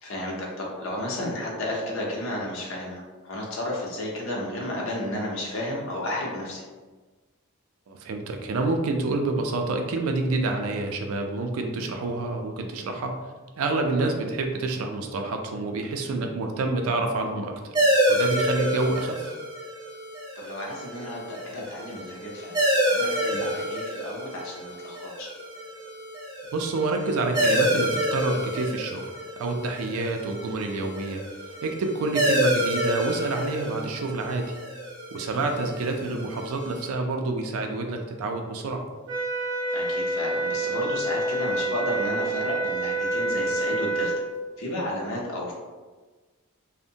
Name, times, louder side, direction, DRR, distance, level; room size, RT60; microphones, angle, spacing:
voice 1, 0.0-6.6 13.9-14.1 18.7-18.8 20.4-25.3 35.3-35.5 39.7-44.2 44.6-45.5, left 1 dB, 65° left, -3 dB, 0.6 m, -32 dB
voice 2, 7.9-13.1 13.6-17.7 18.1-19.3 23.2-23.5 26.5-29.0 29.4-31.2 31.6-34.6 35.1-38.8, right 3 dB, 75° right, 4 dB, 0.4 m, -28 dB
sound 1, 17.7-36.9, right 1 dB, 20° right, 0.5 m, -28 dB
sound 2, 39.1-44.2, right 2 dB, 55° right, 0.8 m, -27 dB
2.6 x 2.1 x 2.7 m, 1.3 s
head